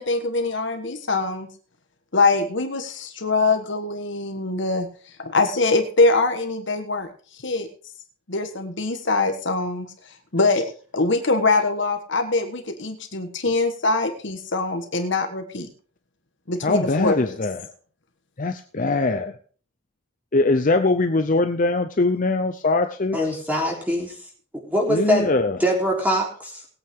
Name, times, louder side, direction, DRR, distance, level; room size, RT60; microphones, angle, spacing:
voice 1, 0.0-1.5 2.1-4.9 5.2-7.1 7.4-7.7 8.3-9.9 10.3-10.6 10.9-15.7 16.5-17.4, left 3 dB, 60° left, 7 dB, 1.4 m, -23 dB
voice 2, 16.6-17.6 18.4-19.3 20.3-23.2 24.9-25.6, left 3 dB, 40° left, 7 dB, 0.7 m, -21 dB
voice 3, 23.1-24.1 24.6-25.3 25.6-26.7, equal, 10° right, -1 dB, 3.7 m, -23 dB
19.5 x 8.7 x 3.7 m, 0.42 s
head